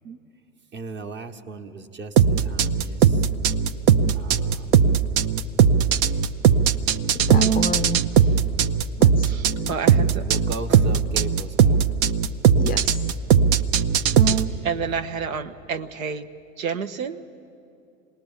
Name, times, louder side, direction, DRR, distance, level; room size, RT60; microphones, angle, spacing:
voice 1, 0.7-3.2 4.1-5.0 10.2-11.9, right 3 dB, 25° right, 8 dB, 1.3 m, -37 dB
sound 1, 2.2-14.4, right 7 dB, 50° right, 0.8 m, -18 dB
voice 2, 7.1-8.1 9.0-9.7 12.6-13.0, left 6 dB, 20° left, 12 dB, 0.5 m, -31 dB
voice 3, 9.3-10.2 10.7-11.1 14.6-16.3 16.6-17.2, right 6 dB, 75° right, 8 dB, 1.0 m, -30 dB
26.5 x 19.5 x 7.3 m, 2.6 s
hypercardioid pair, 95°, 41 cm